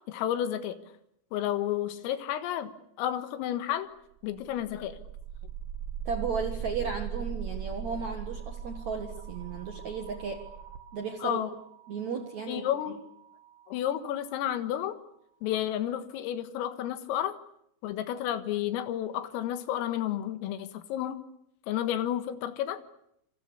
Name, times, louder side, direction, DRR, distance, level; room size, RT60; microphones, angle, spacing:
voice 1, 0.1-0.8 1.3-2.7 3.0-3.9 4.2-5.0 11.2-11.5 12.5-13.0 13.7-15.0 15.4-17.4 17.8-21.2 21.7-22.8, left 11 dB, 90° left, 10 dB, 4.2 m, -31 dB
sound 1, 4.2-14.2, right 8 dB, 85° right, 4.3 m, -40 dB
voice 2, 6.1-10.5 10.9-11.4 11.9-12.6, right 5 dB, 65° right, 5 dB, 1.8 m, -34 dB
27.5 x 27.0 x 7.0 m, 0.75 s
omnidirectional pair, 5.8 m